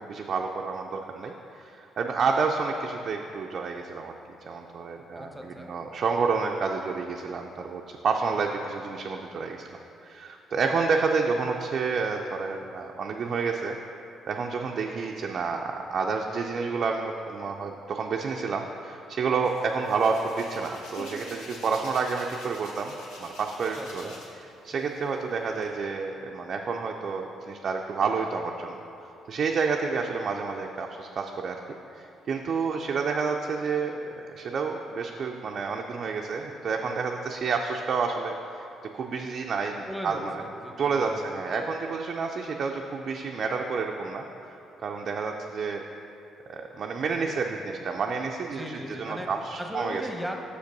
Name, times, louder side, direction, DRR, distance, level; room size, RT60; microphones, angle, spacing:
voice 1, 0.0-4.2 4.5-9.7 10.0-13.7 14.3-24.1 24.6-31.6 32.0-38.7 38.9-40.3 40.8-44.2 44.8-45.8 46.5-50.0, right 5 dB, 55° right, 1 dB, 0.4 m, -29 dB
voice 2, 5.1-5.7 8.3-8.5 23.8-24.2 24.7-25.1 36.4-36.8 39.8-41.4 47.0-47.6 48.5-49.3 49.6-50.3, equal, 5° right, 2 dB, 0.9 m, -39 dB
Hands, 19.4-24.4 24.7-25.6, left 1 dB, 85° left, 1.1 m, -45 dB
6.3 x 5.2 x 5.2 m, 2.8 s
supercardioid pair, 60°, 0 cm